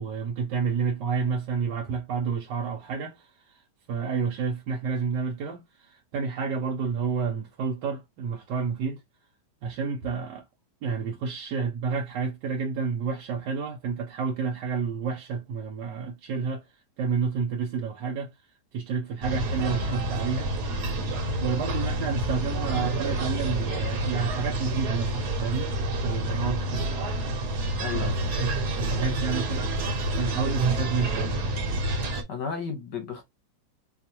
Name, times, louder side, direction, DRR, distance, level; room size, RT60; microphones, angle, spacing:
voice 1, 0.0-3.6 3.9-9.0 9.6-10.4 10.8-16.7 17.0-18.3 18.7-20.8 21.4-25.7 26.0-27.0 27.9-28.1 28.4-31.5, right 5 dB, 85° right, 1.3 m, -30 dB
sound 1, 19.2-32.2, right 1 dB, 70° right, 1.5 m, -28 dB
voice 2, 27.8-28.2 30.3-30.6 32.3-33.2, left 6 dB, 75° left, 1.9 m, -33 dB
4.4 x 2.4 x 2.8 m
omnidirectional pair, 1.9 m